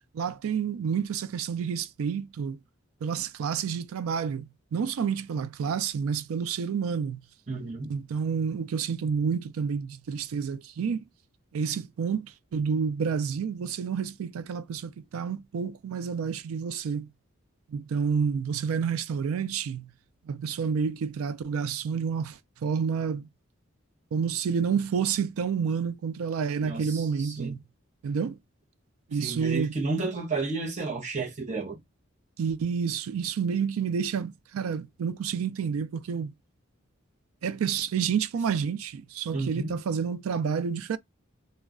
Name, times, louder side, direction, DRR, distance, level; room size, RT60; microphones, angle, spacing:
voice 1, 0.1-2.6 3.0-4.4 4.7-7.2 7.9-11.0 11.5-17.1 17.7-19.9 20.3-23.3 24.1-27.6 28.0-28.4 29.1-29.7 32.4-36.3 37.4-41.0, right 6 dB, 90° right, 0.4 m, -29 dB
voice 2, 7.5-7.9 26.6-27.6 29.1-31.8 39.3-39.7, right 3 dB, 35° right, 0.7 m, -32 dB
2.3 x 2.1 x 3.5 m
head